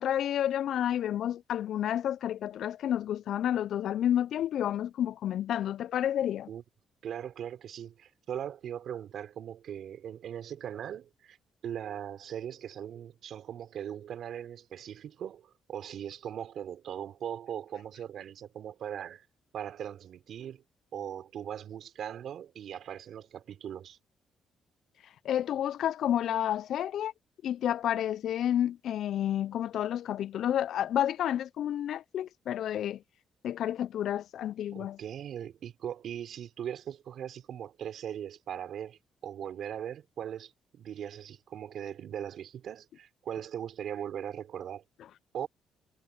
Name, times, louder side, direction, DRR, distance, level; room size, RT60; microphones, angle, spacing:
voice 1, 0.0-6.5 25.2-27.1 27.4-33.0 33.4-35.0, left 10 dB, 70° left, 0.3 m, -30 dB
voice 2, 7.0-11.4 11.6-19.3 19.5-20.6 20.9-24.0 34.7-44.8 45.3-45.5, right 9 dB, 70° right, 4.3 m, -39 dB
cardioid pair, 90°, 0 cm